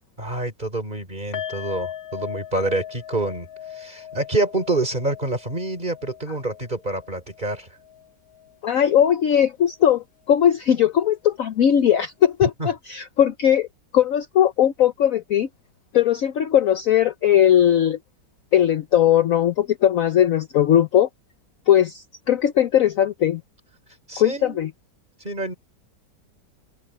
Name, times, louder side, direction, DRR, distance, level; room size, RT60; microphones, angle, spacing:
voice 1, 0.2-7.7 12.4-12.7 24.1-24.6 25.2-25.5, right 2 dB, 25° right, 4.5 m, -27 dB
sound 1, 1.3-8.5 8.8-9.0 9.4-9.5, left 10 dB, 35° left, 2.1 m, -38 dB
voice 2, 8.6-13.7 13.9-15.5 15.9-18.0 18.5-21.1 21.7-23.4 24.2-24.7, left 10 dB, 60° left, 1.0 m, -19 dB
open air
omnidirectional pair, 1.9 m